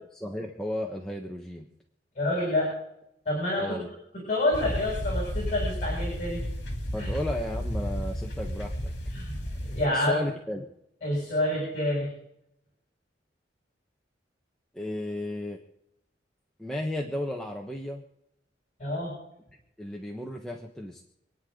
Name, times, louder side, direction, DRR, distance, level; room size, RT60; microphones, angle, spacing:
voice 1, 0.1-1.7 3.6-3.9 6.9-8.9 9.9-10.7 14.7-15.6 16.6-18.0 19.8-21.0, left 1 dB, 5° left, -1 dB, 1.3 m, -34 dB
voice 2, 2.2-2.7 3.3-3.8 4.3-6.4 7.0-7.1 9.1-9.4 9.7-10.2 11.0-12.1 18.8-19.1, left 1 dB, 40° left, -3 dB, 7.6 m, -27 dB
sound 1, 4.5-9.9, equal, 65° left, 3.1 m, -32 dB
27.5 x 9.9 x 3.9 m, 0.78 s
head